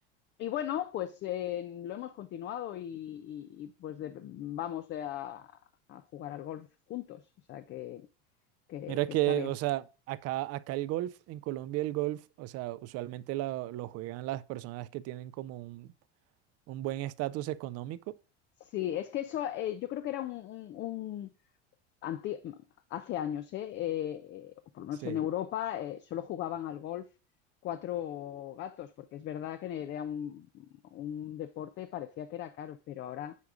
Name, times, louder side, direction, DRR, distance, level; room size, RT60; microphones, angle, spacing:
voice 1, 0.4-5.5 5.9-7.2 7.5-8.1 8.7-9.5 18.6-21.3 22.0-22.6 22.9-27.1 27.6-30.7 30.9-33.4, left 11 dB, 35° left, 0.4 m, -37 dB
voice 2, 8.9-9.8 10.1-15.9 16.7-18.0 25.0-25.2, right 16 dB, 45° right, 0.5 m, -34 dB
8.3 x 4.7 x 2.4 m
hypercardioid pair, 95°, 35 cm